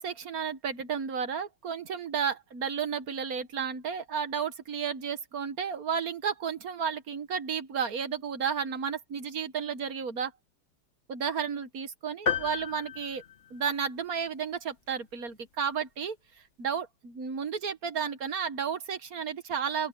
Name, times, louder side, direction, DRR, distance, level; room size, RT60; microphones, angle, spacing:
voice 1, 0.0-10.3 11.1-13.2 13.5-16.2 16.6-19.9, right 7 dB, 45° right, 1.5 m, -32 dB
sound 1, 12.3-14.0, left 6 dB, 35° left, 1.6 m, -33 dB
open air
omnidirectional pair, 2.4 m